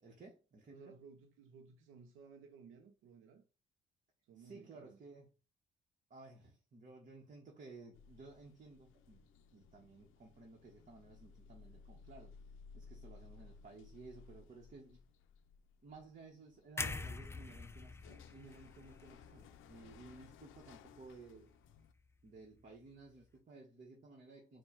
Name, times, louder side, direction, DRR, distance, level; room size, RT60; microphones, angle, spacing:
voice 1, 0.0-1.0 4.4-5.3 6.1-9.2 9.5-12.3 12.7-15.0 15.8-21.6 22.2-24.6, right 3 dB, 40° right, 1.0 m, -56 dB
voice 2, 0.7-3.4 4.2-5.0, right 5 dB, 90° right, 0.5 m, -58 dB
sound 1, 7.9-21.9, left 5 dB, 85° left, 0.4 m, -60 dB
sound 2, 16.8-20.8 21.2-21.4, left 3 dB, 15° left, 0.3 m, -45 dB
4.4 x 2.2 x 4.5 m
cardioid pair, 90°, 20 cm